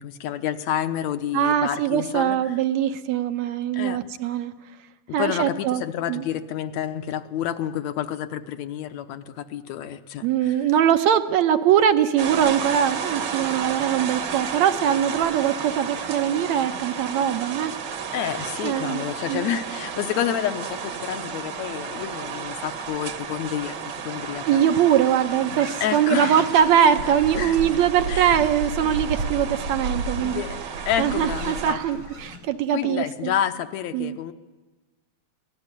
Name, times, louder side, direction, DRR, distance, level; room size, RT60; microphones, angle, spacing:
voice 1, 0.0-2.5 3.7-4.0 5.1-10.6 18.1-24.6 25.8-26.5 27.4-27.7 28.1-28.4 30.2-31.8 32.7-34.3, left 10 dB, 75° left, 9 dB, 2.2 m, -29 dB
voice 2, 1.3-4.5 5.1-5.8 6.1-6.2 10.2-17.7 18.6-19.0 19.3-19.5 24.5-30.4 31.0-33.3 33.9-34.2, right 9 dB, 75° right, 8 dB, 2.2 m, -22 dB
sound 1, 12.2-31.7, right 6 dB, 50° right, 1.5 m, -33 dB
sound 2, 25.4-32.4, right 2 dB, 90° right, 4.9 m, -33 dB
24.5 x 17.5 x 9.8 m, 1.2 s
omnidirectional pair, 3.3 m